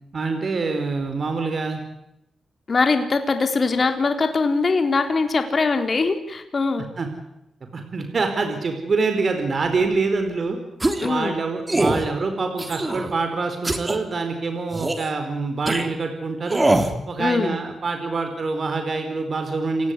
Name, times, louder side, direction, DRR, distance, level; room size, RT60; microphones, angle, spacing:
voice 1, 0.1-1.8 7.0-7.1 7.7-10.6 11.0-16.6 17.1-19.9, right 4 dB, 50° right, 6 dB, 4.6 m, -25 dB
voice 2, 2.7-6.9 11.0-11.4 17.2-17.5, left 4 dB, 45° left, 7 dB, 3.8 m, -22 dB
sound 1, 10.8-11.1 11.7-12.0 12.6-13.1 13.6-14.0 14.7-15.1 15.7-15.8 16.5-16.9, right 2 dB, 20° right, 3.5 m, -22 dB
29.0 x 17.5 x 9.8 m, 0.84 s
cardioid pair, 80°, 0 cm